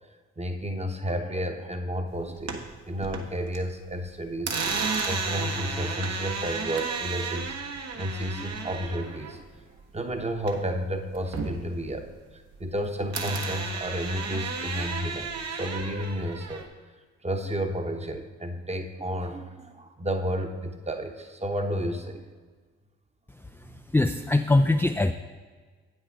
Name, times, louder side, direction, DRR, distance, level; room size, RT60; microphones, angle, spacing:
voice 1, 0.4-7.5 7.9-9.6 9.9-12.1 12.6-16.7 17.2-22.3 23.6-23.8, equal, 20° right, 6 dB, 1.0 m, -32 dB
sound 1, 2.2-3.6 3.9-10.8 11.1-12.8 13.1-16.7, right 4 dB, 55° right, 1.1 m, -33 dB
voice 2, 23.3-25.1, left 2 dB, 5° left, 6 dB, 0.4 m, -23 dB
8.1 x 6.4 x 4.6 m, 1.4 s
hypercardioid pair, 45°, 31 cm